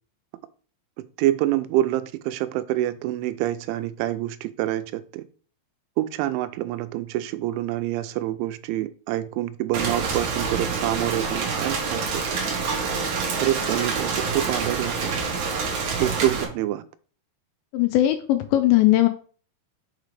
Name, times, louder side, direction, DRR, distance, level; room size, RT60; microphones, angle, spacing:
voice 1, 1.2-5.2 6.0-12.4 13.4-15.2 16.0-16.8, right 14 dB, 90° right, 12 dB, 3.0 m, -26 dB
Rain, 9.7-16.4, right 5 dB, 65° right, 1.9 m, -27 dB
voice 2, 17.7-19.1, left 14 dB, 85° left, 7 dB, 2.8 m, -19 dB
6.6 x 5.0 x 3.2 m, 0.41 s
omnidirectional pair, 5.3 m